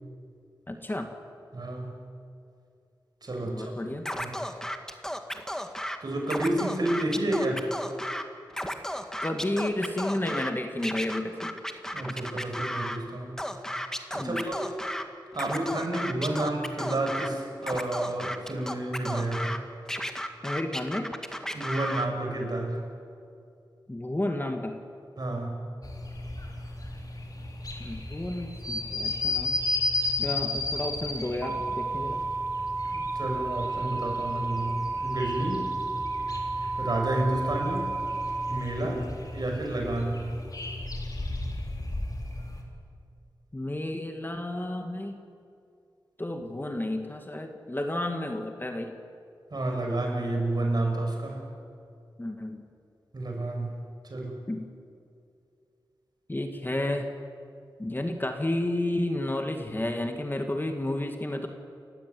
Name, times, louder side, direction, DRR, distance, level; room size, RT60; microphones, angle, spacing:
voice 1, 0.7-1.1 3.4-4.1 9.2-11.6 12.1-12.2 14.2-14.4 20.4-21.1 23.9-24.8 27.8-29.6 30.2-32.2 35.5-35.8 38.8-39.2 43.5-45.2 46.2-48.9 52.2-52.7 54.5-54.7 56.3-57.1 57.8-61.5, left 1 dB, 25° left, 4 dB, 2.3 m, -31 dB
voice 2, 1.5-1.9 3.2-3.7 4.2-4.4 6.0-7.7 11.9-13.4 14.1-14.7 15.3-19.6 21.5-22.8 25.2-25.6 32.9-35.6 36.8-37.9 38.5-39.0 39.3-40.3 49.5-51.4 53.1-53.7 54.0-54.4, right 1 dB, 55° right, 1 dB, 6.2 m, -30 dB
Scratching (performance technique), 4.1-6.0 6.2-8.2 8.5-10.5 10.8-13.0 13.4-15.0 15.3-17.3 17.6-19.6 19.9-22.1, equal, 5° left, 1.8 m, -33 dB
sound 1, 25.8-42.6, left 2 dB, 50° left, 4.1 m, -34 dB
sound 2, 31.4-38.6, right 3 dB, 20° right, 6.4 m, -32 dB
29.5 x 14.5 x 9.6 m, 2.4 s
wide cardioid pair, 60°, 8 cm